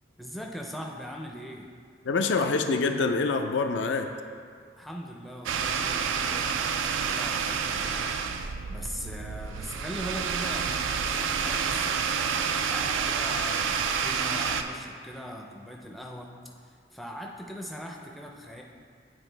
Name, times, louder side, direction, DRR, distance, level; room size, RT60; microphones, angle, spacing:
voice 1, 0.2-1.7 4.8-12.2 12.7-16.3 16.6-18.6, equal, ahead, 0 dB, 0.4 m, -41 dB
voice 2, 2.0-4.1, left 4 dB, 75° left, 6 dB, 0.4 m, -25 dB
sound 1, 5.5-14.6, right 6 dB, 90° right, 0.4 m, -29 dB
9.0 x 4.7 x 3.3 m, 2.1 s
head